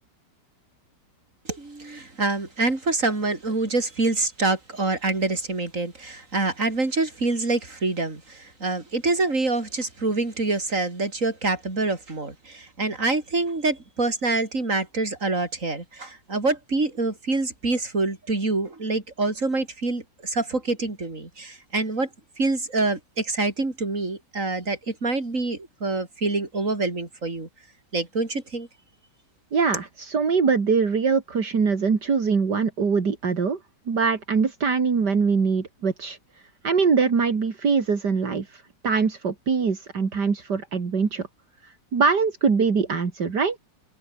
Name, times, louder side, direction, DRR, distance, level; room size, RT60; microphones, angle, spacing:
voice 1, 1.4-22.1 22.4-27.5 27.9-28.7, right 3 dB, 45° right, 4.9 m, -26 dB
voice 2, 29.5-33.6 33.9-36.2 36.6-41.3 41.9-43.6, right 5 dB, 70° right, 3.1 m, -23 dB
omnidirectional pair, 1.9 m